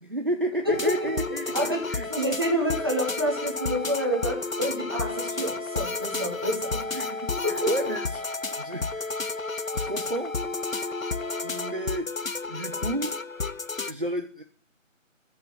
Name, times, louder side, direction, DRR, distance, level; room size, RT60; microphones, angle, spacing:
voice 1, 0.0-2.1 6.9-9.1 9.7-10.4 10.7-10.9 11.4-12.1 12.5-13.2 13.9-14.4, right 1 dB, 40° right, 1.1 m, -32 dB
sound 1, 0.7-13.9, left 3 dB, 85° left, 1.2 m, -31 dB
voice 2, 1.5-6.9 7.4-7.7, equal, 20° right, 2.8 m, -28 dB
14.5 x 6.8 x 7.8 m
figure-of-eight pair, 175°, 40 cm